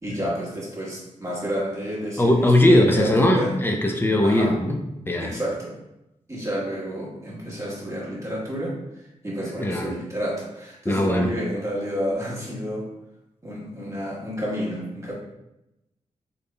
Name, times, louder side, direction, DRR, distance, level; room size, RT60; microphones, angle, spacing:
voice 1, 0.0-3.5 4.2-4.6 5.2-5.8 6.3-12.9 13.4-15.1, equal, 20° right, -6 dB, 1.4 m, -30 dB
voice 2, 2.2-4.8 5.1-5.3 9.6-9.9 10.8-11.3, left 1 dB, 15° left, 2 dB, 0.5 m, -19 dB
4.0 x 3.4 x 2.2 m, 0.90 s
cardioid pair, 80°, 13 cm